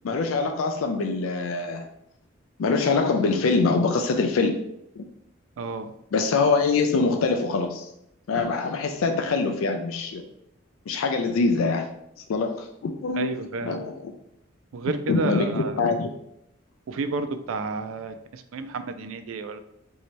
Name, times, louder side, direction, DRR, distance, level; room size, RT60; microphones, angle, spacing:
voice 1, 0.0-1.9 2.6-4.6 5.0-5.1 6.1-7.9 8.3-10.2 10.9-11.9 12.3-14.1 15.1-16.1, left 4 dB, 90° left, 6 dB, 0.4 m, -24 dB
voice 2, 5.6-5.9 13.1-13.8 14.7-15.8 16.9-19.6, right 4 dB, 90° right, 9 dB, 0.4 m, -31 dB
3.0 x 2.7 x 4.4 m, 0.79 s
head